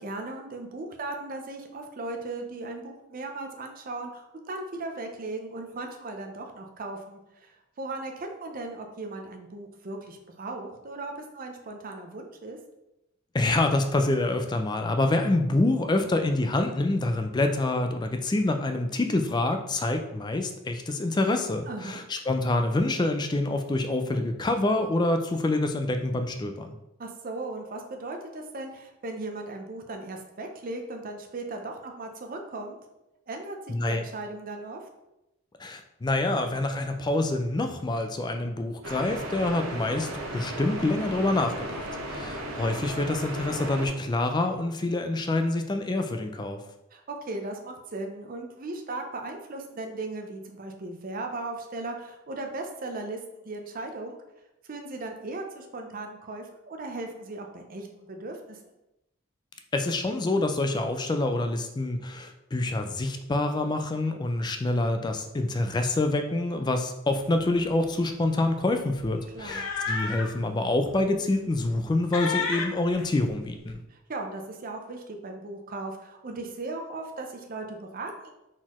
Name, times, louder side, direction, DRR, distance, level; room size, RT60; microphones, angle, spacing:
voice 1, 0.0-12.6 21.7-22.0 27.0-32.8 33.3-34.8 46.9-53.2 53.4-54.2 54.7-58.6 69.3-69.6 73.9-78.3, right 2 dB, 40° right, 4 dB, 0.5 m, -37 dB
voice 2, 13.3-26.8 33.7-34.0 35.6-46.6 59.7-73.8, left 2 dB, 20° left, 6 dB, 0.3 m, -26 dB
sound 1, 38.8-43.9, right 1 dB, 75° right, 0.9 m, -35 dB
sound 2, 67.2-67.4 67.7-67.9 69.0-70.4 70.9-71.0 71.5-71.9 72.1-73.7, left 4 dB, 70° left, 0.6 m, -32 dB
4.2 x 4.0 x 3.0 m, 0.92 s
head